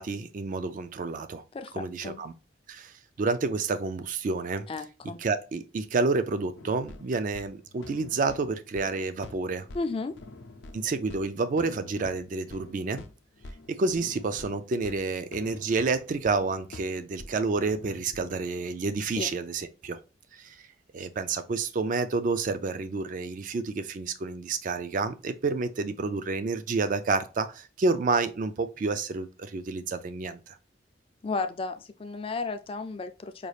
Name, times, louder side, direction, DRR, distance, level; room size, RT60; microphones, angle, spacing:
voice 1, 0.0-1.4 1.7-2.3 2.7-4.7 5.2-9.7 10.7-13.0 13.7-20.0 20.3-20.6 20.9-30.6, right 3 dB, 45° right, 0.4 m, -29 dB
voice 2, 1.5-2.2 4.7-5.2 9.7-10.1 19.2-19.3 31.2-33.5, left 3 dB, 30° left, 0.4 m, -33 dB
sound 1, 6.6-18.5, left 2 dB, 85° left, 0.6 m, -47 dB
5.1 x 2.3 x 3.2 m
head